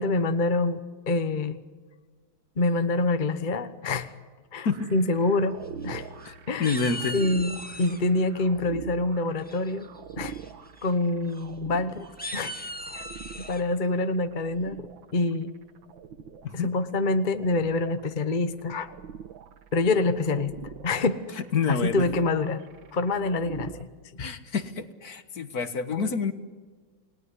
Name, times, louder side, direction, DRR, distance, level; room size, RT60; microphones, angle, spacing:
voice 1, 0.0-1.6 2.6-4.1 4.5-5.6 5.8-6.1 6.5-6.7 7.1-9.9 10.2-10.3 10.8-12.1 12.3-12.5 12.9-13.0 13.4-14.8 15.1-15.5 16.5-18.9 19.7-20.5 20.8-21.2 21.7-22.6 22.9-23.9 24.2-24.3 25.9-26.3, left 2 dB, 30° left, 10 dB, 1.0 m, -26 dB
sound 1, 4.7-23.8, right 7 dB, 85° right, 2.0 m, -44 dB
sound 2, 5.6-6.3 6.6-8.0 9.4-9.8 10.3-10.5 10.8-10.9 11.3-11.4 12.0-13.6, left 1 dB, 5° left, 1.9 m, -38 dB
voice 2, 6.2-7.2 16.4-16.7 21.4-22.1 24.2-26.3, left 5 dB, 55° left, 10 dB, 1.8 m, -28 dB
29.5 x 19.0 x 9.8 m, 1.5 s
omnidirectional pair, 2.1 m